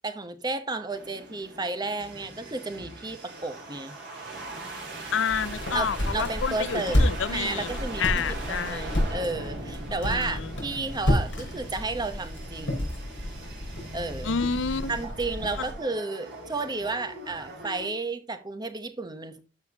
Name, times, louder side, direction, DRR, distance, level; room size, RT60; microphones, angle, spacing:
voice 1, 0.0-3.9 5.7-13.0 13.9-14.4 14.9-19.4, right 3 dB, 20° right, 0.9 m, -32 dB
sound 1, 0.9-17.9, right 2 dB, 65° right, 4.3 m, -41 dB
voice 2, 5.1-7.7 8.0-8.9 10.0-10.5 14.2-14.9, left 6 dB, 85° left, 0.6 m, -29 dB
sound 2, 5.3-15.8, equal, 70° left, 5.2 m, -30 dB
12.5 x 5.6 x 2.9 m
head